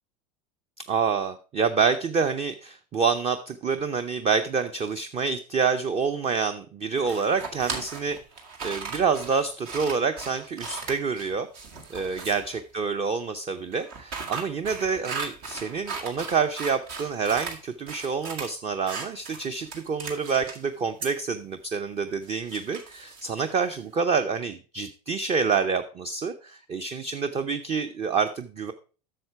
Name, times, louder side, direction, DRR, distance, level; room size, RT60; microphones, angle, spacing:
voice 1, 0.9-8.2 8.6-11.5 11.9-28.7, right 5 dB, 30° right, 9 dB, 0.7 m, -27 dB
sound 1, 7.0-12.6 13.7-17.6 17.9-18.5 18.9-20.6 21.0-21.1 22.2-23.8, right 5 dB, 65° right, 2.0 m, -37 dB
7.8 x 6.7 x 4.6 m, 0.36 s
hypercardioid pair, 100°, 21 cm